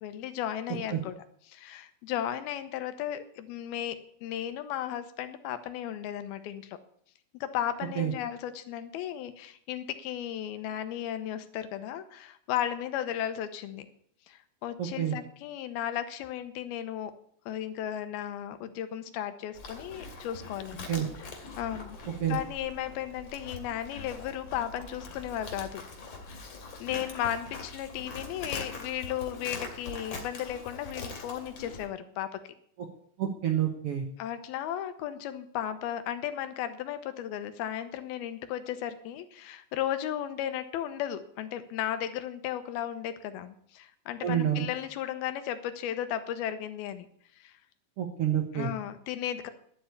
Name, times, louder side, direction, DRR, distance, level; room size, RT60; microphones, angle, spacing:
voice 1, 0.0-1.1 1.5-6.8 7.4-13.9 14.3-17.1 17.5-20.9 21.6-22.0 22.3-25.8 26.3-26.5 26.8-32.5 34.2-47.1 47.4-47.5 48.5-49.5, left 11 dB, 85° left, 10 dB, 2.9 m, -35 dB
voice 2, 14.8-15.2 20.9-21.1 22.2-22.4 33.2-34.0 44.2-44.7 48.0-48.7, right 10 dB, 70° right, 3 dB, 1.3 m, -28 dB
Livestock farm animals working animals, 19.5-31.9, left 3 dB, 45° left, 3.0 m, -43 dB
11.5 x 8.1 x 8.3 m, 0.64 s
omnidirectional pair, 4.3 m